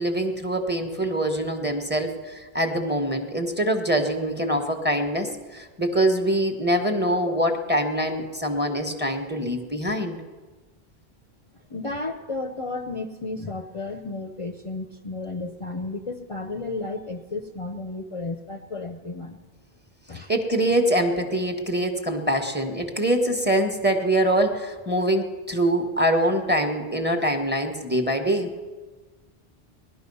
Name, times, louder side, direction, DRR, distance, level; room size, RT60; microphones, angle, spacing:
voice 1, 0.0-10.2 20.3-28.5, right 1 dB, 10° right, 5 dB, 1.3 m, -24 dB
voice 2, 11.7-19.4 20.1-20.3, left 3 dB, 35° left, 3 dB, 0.8 m, -33 dB
19.0 x 11.5 x 5.5 m, 1.3 s
omnidirectional pair, 1.0 m